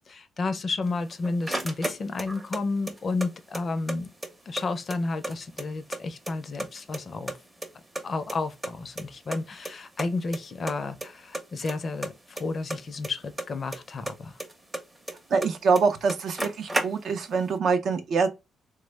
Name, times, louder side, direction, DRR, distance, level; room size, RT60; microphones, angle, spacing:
voice 1, 0.0-4.1 4.5-7.3 8.0-14.4, left 3 dB, 45° left, 0.4 m, -31 dB
sound 1, 0.9-2.6 2.9-4.0 4.2-4.3 4.6-6.0 6.3-7.0 7.3-8.7 9.0-9.1 9.3-9.4 9.7-9.8 10.0-10.4 10.7-11.1 11.3-13.8 14.1-15.5 15.8-15.9 16.1-17.3, right 1 dB, 15° right, 0.6 m, -33 dB
voice 2, 15.3-18.3, right 5 dB, 60° right, 0.5 m, -24 dB
3.2 x 2.0 x 3.2 m
cardioid pair, 90°, 0 cm